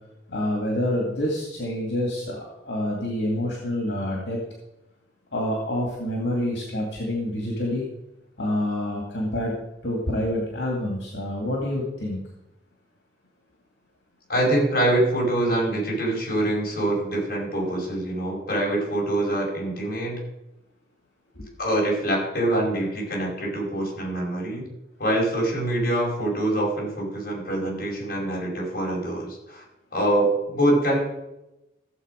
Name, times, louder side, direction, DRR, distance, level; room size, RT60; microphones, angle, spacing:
voice 1, 0.3-4.4 5.3-7.9 8.4-9.5 9.8-12.2 21.4-21.5, left 1 dB, 80° left, -1 dB, 2.4 m, -27 dB
voice 2, 14.3-20.2 21.6-24.7 25.0-29.6 29.9-31.0, right 1 dB, 55° left, -2 dB, 5.2 m, -24 dB
16.0 x 7.5 x 5.3 m, 0.94 s
head